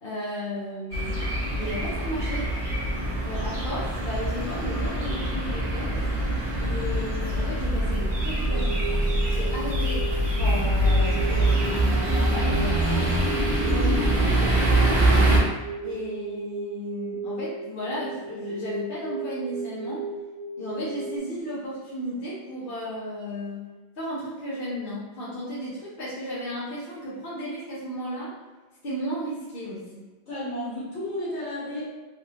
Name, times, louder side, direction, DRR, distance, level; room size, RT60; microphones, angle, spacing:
voice 1, 0.0-1.3 1.6-2.5 3.2-5.9 6.6-10.1 10.3-13.1 13.6-15.3 15.8-20.1 20.6-23.6 23.9-28.3 28.8-30.0, equal, 55° left, -8 dB, 1.1 m, -34 dB
sound 1, 0.9-15.4, right 1 dB, 30° right, 0.8 m, -24 dB
sound 2, 8.5-21.2, right 3 dB, 75° right, 0.8 m, -35 dB
voice 2, 30.3-31.8, left 1 dB, 75° left, -9 dB, 1.8 m, -32 dB
3.3 x 2.7 x 2.9 m, 1.2 s
omnidirectional pair, 1.1 m